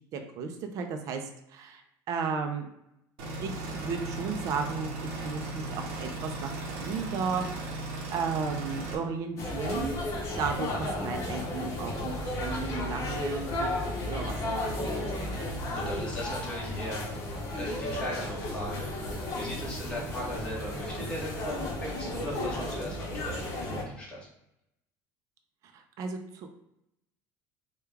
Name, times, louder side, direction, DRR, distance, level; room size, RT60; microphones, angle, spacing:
voice 1, 0.1-2.7 3.4-6.5 6.8-7.5 7.7-7.8 8.1-10.0 10.4-15.1 25.7-26.5, right 5 dB, 50° right, 5 dB, 0.4 m, -34 dB
sound 1, 3.2-9.0, right 2 dB, 90° right, 0.7 m, -37 dB
sound 2, 9.4-23.8, left 1 dB, 40° left, 0.9 m, -33 dB
voice 2, 15.7-17.3 17.5-24.2, equal, 15° left, -5 dB, 1.2 m, -38 dB
3.2 x 2.2 x 3.3 m, 0.82 s
cardioid pair, 145°, 8 cm